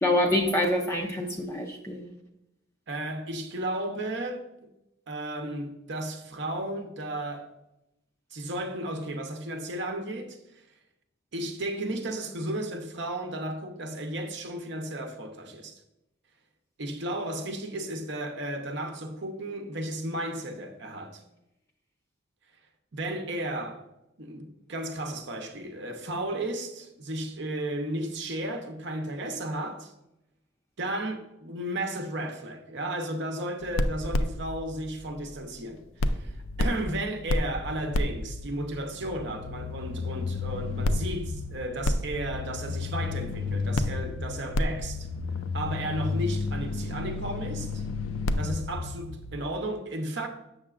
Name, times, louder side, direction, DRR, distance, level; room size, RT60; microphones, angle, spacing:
voice 1, 0.0-2.1, left 1 dB, 15° left, 0.4 m, -26 dB
voice 2, 2.9-4.7 5.1-7.5 8.3-10.6 11.3-15.8 16.8-21.2 22.9-23.8 24.2-29.9 30.8-45.1 45.5-47.8 48.4-50.3, right 1 dB, 60° right, 0.8 m, -34 dB
sound 1, 33.6-35.7 36.0-49.5, left 2 dB, 80° left, 0.4 m, -31 dB
7.3 x 6.8 x 2.4 m
head